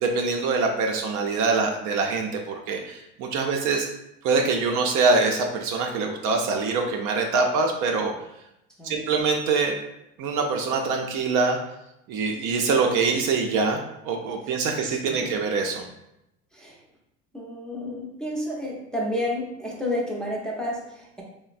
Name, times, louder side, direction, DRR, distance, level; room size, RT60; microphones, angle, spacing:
voice 1, 0.0-3.9 4.2-8.1 8.8-9.8 10.2-11.6 12.1-13.8 14.0-15.9, right 4 dB, 55° right, 2 dB, 0.5 m, -24 dB
voice 2, 8.8-9.1 14.4-15.3 16.5-16.8 17.3-21.2, left 1 dB, ahead, -4 dB, 0.6 m, -31 dB
3.1 x 2.1 x 2.4 m, 0.83 s
hypercardioid pair, 80°, 38 cm